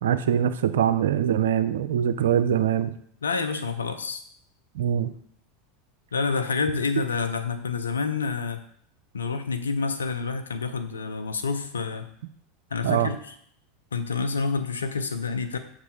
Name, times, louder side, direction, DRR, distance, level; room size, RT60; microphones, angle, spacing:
voice 1, 0.0-2.9 4.8-5.1 12.8-13.1, right 9 dB, 70° right, 12 dB, 0.4 m, -23 dB
voice 2, 3.2-4.2 6.1-8.6 9.1-12.1 12.7-13.3 13.9-15.6, left 4 dB, 85° left, 9 dB, 0.6 m, -28 dB
6.7 x 4.8 x 3.7 m, 0.63 s
figure-of-eight pair, 85°, 0 cm